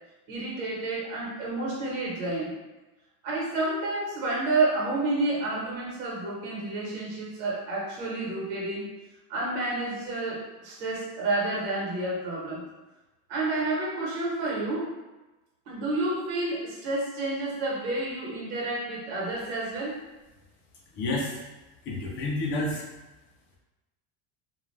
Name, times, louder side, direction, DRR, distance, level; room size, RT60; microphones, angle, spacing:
voice 1, 0.3-2.5 3.2-8.9 9.3-12.6 13.3-14.9 15.7-20.0, right 2 dB, 80° right, -4 dB, 1.3 m, -30 dB
voice 2, 20.9-21.4 21.9-22.8, left 2 dB, 30° left, -3 dB, 0.4 m, -29 dB
2.5 x 2.3 x 3.2 m, 1.1 s
cardioid pair, 165°, 44 cm